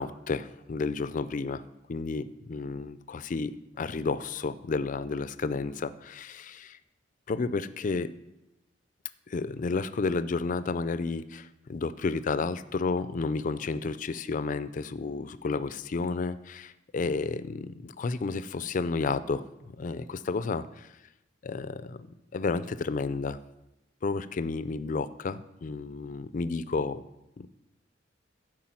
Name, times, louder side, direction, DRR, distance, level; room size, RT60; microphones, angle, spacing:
voice 1, 0.0-1.6 1.9-6.8 7.3-8.1 9.3-20.9 21.4-22.1 22.3-23.4 24.0-27.1 27.4-27.5, left 4 dB, 45° left, 14 dB, 0.4 m, -31 dB
11.5 x 4.8 x 5.8 m, 0.93 s
head